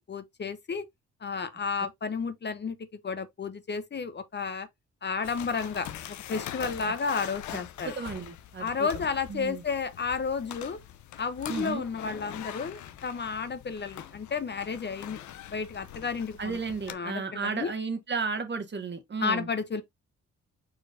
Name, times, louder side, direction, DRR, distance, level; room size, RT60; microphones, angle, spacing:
voice 1, 0.1-0.9 1.2-4.7 5.0-7.9 8.6-10.8 11.2-15.2 15.5-16.6 16.9-17.7 19.2-19.8, left 5 dB, 35° left, 0.7 m, -32 dB
sound 1, 5.2-16.9, left 11 dB, 75° left, 0.6 m, -43 dB
voice 2, 7.5-8.9 9.3-9.6 11.5-11.8 16.4-19.5, right 5 dB, 40° right, 1.4 m, -34 dB
4.6 x 4.4 x 2.5 m
cardioid pair, 65°, 29 cm